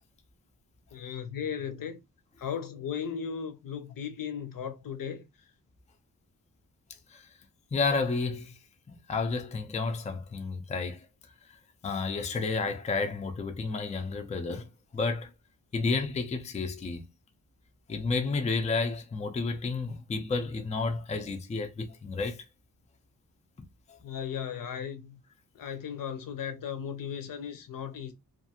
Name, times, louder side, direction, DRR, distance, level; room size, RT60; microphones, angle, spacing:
voice 1, 0.9-2.0 2.4-5.2 24.0-25.2 25.5-28.1, left 7 dB, 70° left, 0.6 m, -36 dB
voice 2, 7.7-8.5 8.9-11.1 11.5-11.6 11.8-14.7 14.9-15.3 15.7-17.0 17.9-22.4 23.9-24.0, left 4 dB, 20° left, 0.4 m, -31 dB
2.5 x 2.3 x 2.7 m
wide cardioid pair, 135°, 35 cm